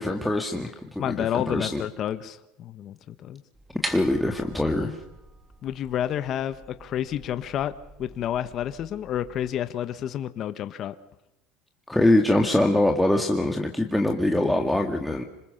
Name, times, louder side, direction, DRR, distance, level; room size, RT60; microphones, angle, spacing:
voice 1, 0.0-1.8 3.9-5.0 11.9-15.2, left 1 dB, 5° left, 2 dB, 2.0 m, -23 dB
voice 2, 1.0-3.4 5.6-7.7 8.0-10.9, left 10 dB, 45° left, 11 dB, 1.3 m, -30 dB
sound 1, 3.5-9.5, right 1 dB, 10° right, 3.1 m, -42 dB
26.5 x 21.0 x 6.7 m, 0.98 s
supercardioid pair, 125°, 0 cm